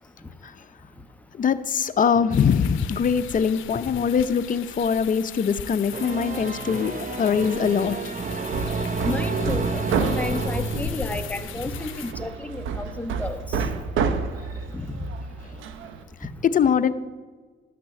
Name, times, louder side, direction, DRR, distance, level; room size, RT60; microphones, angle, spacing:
voice 1, 1.3-8.0 16.5-16.9, left 6 dB, 40° left, 12 dB, 0.7 m, -22 dB
sound 1, 2.3-12.1, left 11 dB, 80° left, 0.6 m, -39 dB
sound 2, 5.9-11.6, right 4 dB, 40° right, 0.8 m, -30 dB
Hammer, 8.2-16.0, right 5 dB, 80° right, 0.9 m, -30 dB
voice 2, 9.0-13.7 14.7-14.9, left 2 dB, 5° left, 6 dB, 1.1 m, -32 dB
12.0 x 6.0 x 8.3 m, 1.4 s
cardioid pair, 90°, 20 cm